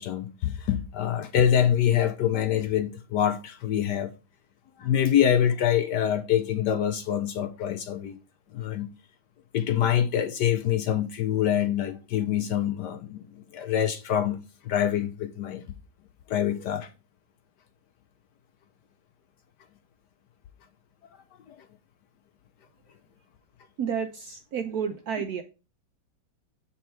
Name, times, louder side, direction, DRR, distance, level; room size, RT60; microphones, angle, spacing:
voice 1, 0.0-4.1 4.8-8.2 8.5-8.9 9.5-14.4 14.6-15.6 16.3-16.9 21.5-21.6, left 10 dB, 70° left, 1.0 m, -25 dB
voice 2, 23.8-25.4, right 7 dB, 70° right, 0.9 m, -31 dB
7.0 x 4.3 x 4.4 m
omnidirectional pair, 2.2 m